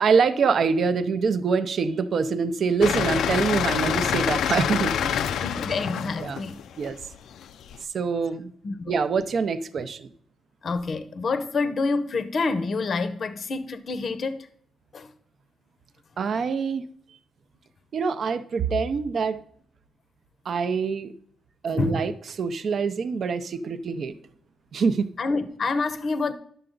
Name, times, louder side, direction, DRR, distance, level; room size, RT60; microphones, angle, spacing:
voice 1, 0.0-5.3 6.2-6.4 6.8-7.0 7.9-8.5 8.9-10.1 16.2-16.9 17.9-19.4 20.5-21.1 21.6-22.1 22.4-24.1 24.7-25.1, right 5 dB, 50° right, 0.6 m, -25 dB
sound 1, 2.8-7.8, left 9 dB, 90° left, 0.4 m, -26 dB
voice 2, 5.3-6.6 8.6-8.9 10.6-14.5 14.9-15.1 21.8-22.0 25.2-26.3, left 3 dB, 40° left, 0.7 m, -27 dB
11.0 x 6.7 x 3.8 m
wide cardioid pair, 165°, 0 cm